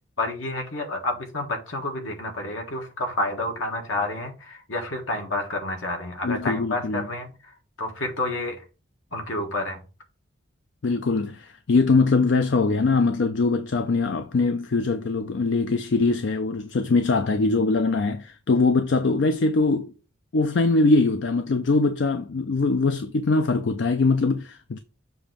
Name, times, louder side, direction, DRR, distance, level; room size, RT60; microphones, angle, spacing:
voice 1, 0.2-8.6 9.1-9.8, left 2 dB, 80° left, 1.6 m, -29 dB
voice 2, 6.2-7.1 10.8-19.9 20.3-24.8, left 3 dB, 65° left, 0.5 m, -22 dB
7.0 x 2.9 x 5.0 m
head